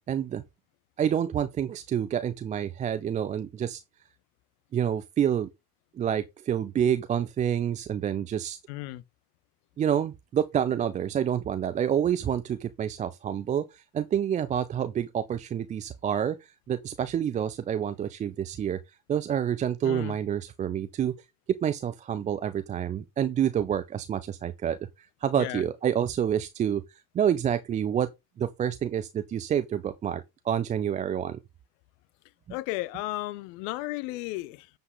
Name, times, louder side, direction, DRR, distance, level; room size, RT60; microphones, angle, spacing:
voice 1, 0.1-0.4 1.0-3.8 4.7-5.5 5.9-8.6 9.8-18.8 19.1-21.1 21.6-28.1 28.4-31.4 32.5-32.6, right 9 dB, 15° right, 0.4 m, -28 dB
voice 2, 8.7-9.0 19.8-20.2 25.3-25.6 32.5-34.7, left 18 dB, 55° left, 0.8 m, -34 dB
9.4 x 5.3 x 3.8 m
figure-of-eight pair, 60°, 49 cm